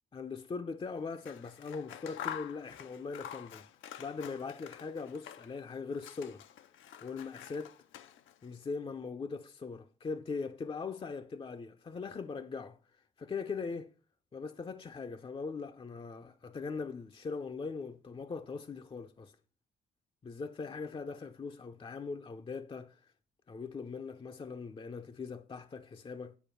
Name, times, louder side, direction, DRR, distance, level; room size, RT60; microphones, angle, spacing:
voice 1, 0.1-3.7 4.0-6.4 7.0-7.8 8.4-12.8 13.2-13.9 14.3-19.3 20.2-23.0 23.5-26.4, left 4 dB, 25° left, 0.6 m, -40 dB
Scissors, 1.1-5.6 5.9-8.5, left 10 dB, 80° left, 0.6 m, -47 dB
9.2 x 4.4 x 6.9 m
cardioid pair, 90°, 20 cm